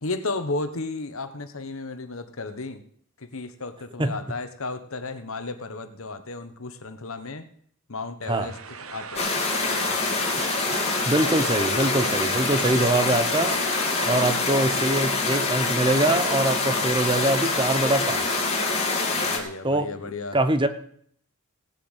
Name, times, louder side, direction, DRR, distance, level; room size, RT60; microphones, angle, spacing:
voice 1, 0.0-2.8 3.2-7.5 7.9-8.6 8.9-10.2 19.1-20.4, left 3 dB, 70° left, 10 dB, 1.2 m, -34 dB
sound 1, 8.2-14.3, right 5 dB, 75° right, 1.1 m, -38 dB
sound 2, 9.2-19.4, left 3 dB, 30° left, 2.5 m, -25 dB
voice 2, 11.1-13.6 14.0-18.4 19.6-19.9 20.3-20.7, right 1 dB, 20° right, 10 dB, 0.9 m, -23 dB
17.0 x 6.8 x 8.1 m, 0.62 s
head